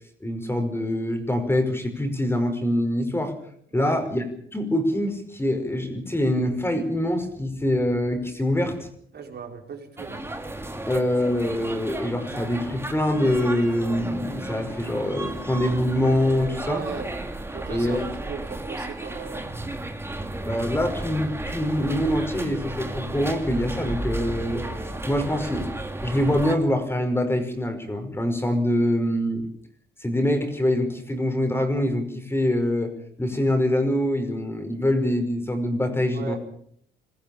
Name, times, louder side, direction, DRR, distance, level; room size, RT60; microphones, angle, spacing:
voice 1, 0.2-3.3 3.7-4.2 4.5-8.9 10.9-16.8 17.7-18.1 20.4-24.6 25.1-25.7 26.0-29.5 30.0-32.9 33.2-36.4, left 1 dB, 10° left, 6 dB, 5.4 m, -24 dB
voice 2, 9.1-10.2 16.7-17.1 17.5-18.0 18.3-19.4 36.1-36.4, right 5 dB, 55° right, 3 dB, 5.1 m, -36 dB
sound 1, 10.0-26.6, right 1 dB, 10° right, 2.6 m, -33 dB
22.0 x 14.5 x 8.9 m, 0.66 s
cardioid pair, 90°, 20 cm